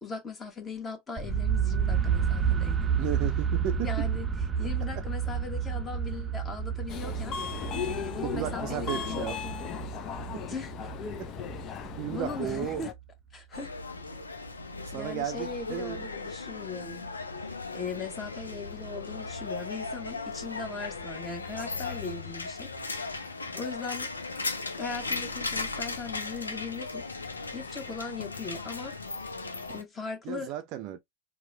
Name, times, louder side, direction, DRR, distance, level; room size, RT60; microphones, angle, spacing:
voice 1, 0.0-2.9 3.8-4.3 4.6-9.7 10.5-11.1 11.7-11.8 12.1-12.9 13.3-13.7 14.9-17.1 17.4-23.1 23.5-24.1 24.8-27.0 27.5-29.2 29.7-30.5, left 4 dB, 20° left, 1.3 m, -39 dB
sound 1, 1.2-13.0, right 7 dB, 15° right, 0.8 m, -31 dB
voice 2, 3.0-3.9 8.2-9.4 10.3-10.4 11.2-11.3 12.0-12.8 14.9-16.1 30.2-31.0, right 12 dB, 40° right, 0.6 m, -34 dB
Subway metro underground, 6.9-12.9, left 7 dB, 35° left, 0.7 m, -36 dB
sound 2, 13.5-29.8, left 3 dB, 75° left, 0.7 m, -37 dB
4.6 x 2.4 x 3.2 m
figure-of-eight pair, 90°, 0 cm